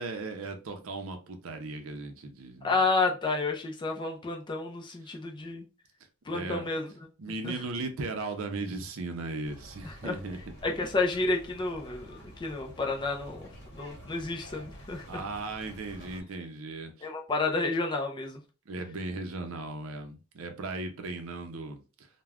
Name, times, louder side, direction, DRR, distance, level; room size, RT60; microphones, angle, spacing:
voice 1, 0.0-2.7 6.3-6.7 7.2-10.4 15.1-17.1 18.7-22.1, right 3 dB, 65° right, 0.5 m, -37 dB
voice 2, 2.6-5.6 6.3-6.9 7.4-7.6 9.8-10.2 10.6-15.2 17.0-18.4, left 3 dB, 20° left, 0.4 m, -30 dB
sound 1, 9.4-16.2, equal, 55° left, 1.0 m, -49 dB
2.3 x 2.1 x 3.4 m
head